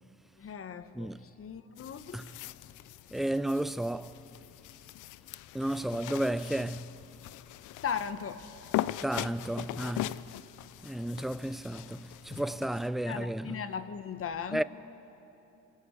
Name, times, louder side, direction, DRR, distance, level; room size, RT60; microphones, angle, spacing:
voice 1, 0.4-2.4 7.8-8.5 13.1-14.6, left 7 dB, 50° left, 1.0 m, -37 dB
sound 1, 1.8-12.9, left 15 dB, 80° left, 0.5 m, -40 dB
voice 2, 3.1-4.2 5.5-7.0 9.0-10.3 10.8-13.6 14.5-14.6, right 1 dB, ahead, 0.4 m, -33 dB
27.5 x 11.5 x 8.4 m
cardioid pair, 90°, 30 cm